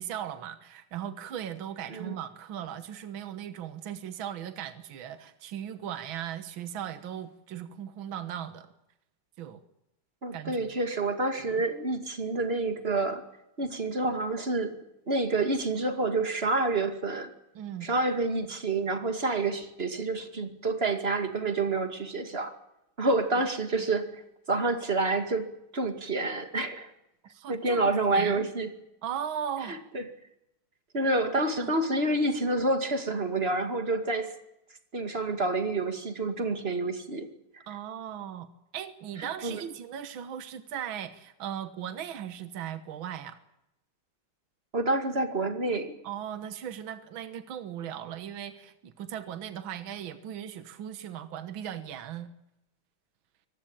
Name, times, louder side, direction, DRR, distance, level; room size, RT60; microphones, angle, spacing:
voice 1, 0.0-8.7 9.4-9.6 10.3-10.7 11.4-11.6 17.6-17.9 23.6-23.9 27.2-28.5 29.0-29.8 31.6-31.7 37.7-43.4 46.0-52.3, right 9 dB, 70° right, 11 dB, 2.0 m, -38 dB
voice 2, 10.2-13.2 13.6-14.7 15.1-17.3 17.8-22.5 23.0-24.2 24.5-26.9 27.5-28.7 29.7-30.0 30.9-34.3 34.9-37.3 39.4-39.6 44.7-45.9, right 2 dB, 30° right, 7 dB, 2.4 m, -28 dB
24.5 x 19.0 x 8.8 m, 0.86 s
omnidirectional pair, 2.3 m